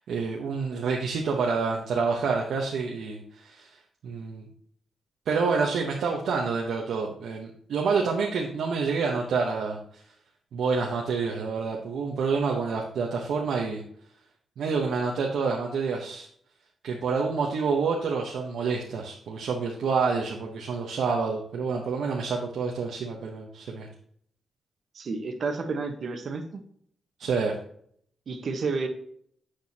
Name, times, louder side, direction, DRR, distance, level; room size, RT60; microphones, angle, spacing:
voice 1, 0.1-3.7 4.0-4.4 5.3-10.0 10.5-13.8 14.6-16.3 16.8-23.9 27.2-27.5, right 5 dB, 80° right, 0 dB, 1.0 m, -28 dB
voice 2, 24.9-26.6 28.3-28.9, right 4 dB, 60° right, 6 dB, 1.2 m, -31 dB
7.9 x 6.6 x 2.8 m, 0.63 s
supercardioid pair, 55°, 0 cm